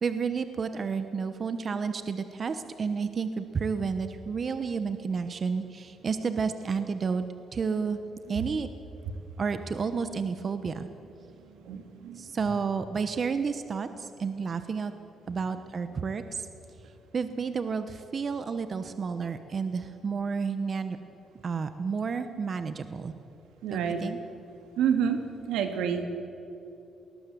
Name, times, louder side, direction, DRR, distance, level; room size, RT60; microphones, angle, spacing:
voice 1, 0.0-7.2 7.5-8.0 8.3-8.7 9.4-10.9 12.1-14.9 15.3-16.5 17.1-21.0 21.4-23.1 23.7-24.2, right 5 dB, 45° right, 10 dB, 1.1 m, -31 dB
voice 2, 11.6-12.2 23.6-24.0 24.8-25.2 25.5-26.1, right 8 dB, 90° right, 6 dB, 2.2 m, -28 dB
20.5 x 19.5 x 7.6 m, 2.9 s
cardioid pair, 90°, 0 cm